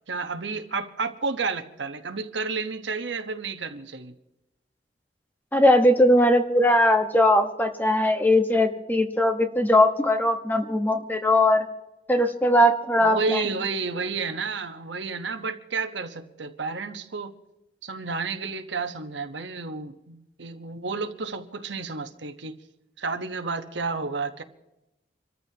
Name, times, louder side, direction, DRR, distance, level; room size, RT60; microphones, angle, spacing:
voice 1, 0.1-4.1 13.0-17.3 17.8-22.6 23.0-24.4, right 4 dB, 85° right, 7 dB, 1.2 m, -31 dB
voice 2, 5.5-11.6 12.1-13.4, left 1 dB, 10° left, 5 dB, 1.3 m, -20 dB
27.0 x 14.0 x 2.9 m, 0.92 s
head